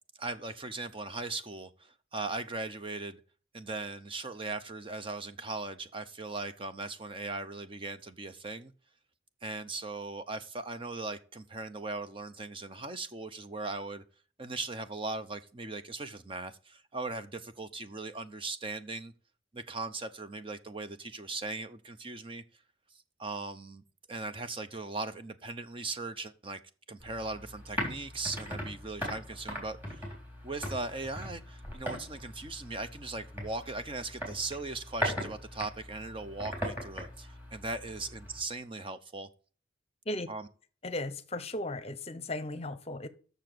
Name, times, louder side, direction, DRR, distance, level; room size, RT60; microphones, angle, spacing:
voice 1, 0.2-3.2 3.5-8.7 9.4-14.0 14.4-19.1 19.5-22.4 22.9-23.8 24.1-26.6 26.9-30.1 30.4-39.3 40.3-40.4, right 3 dB, 25° right, 0.6 m, -39 dB
sound 1, 27.0-38.4, equal, 10° right, 3.8 m, -39 dB
voice 2, 40.8-43.1, left 1 dB, 30° left, 0.8 m, -36 dB
7.0 x 6.7 x 7.8 m
head